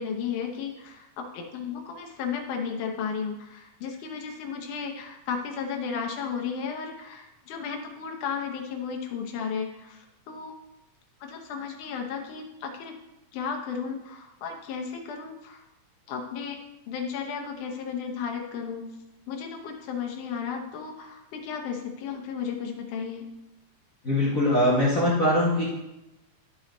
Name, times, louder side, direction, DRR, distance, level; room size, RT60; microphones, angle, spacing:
voice 1, 0.0-10.5 11.2-13.0 13.3-15.6 16.1-16.6 16.9-18.9 19.3-23.3, left 6 dB, 75° left, 2 dB, 2.4 m, -34 dB
voice 2, 24.0-25.6, left 1 dB, 35° left, -7 dB, 1.6 m, -22 dB
12.0 x 4.9 x 3.9 m, 0.95 s
omnidirectional pair, 3.7 m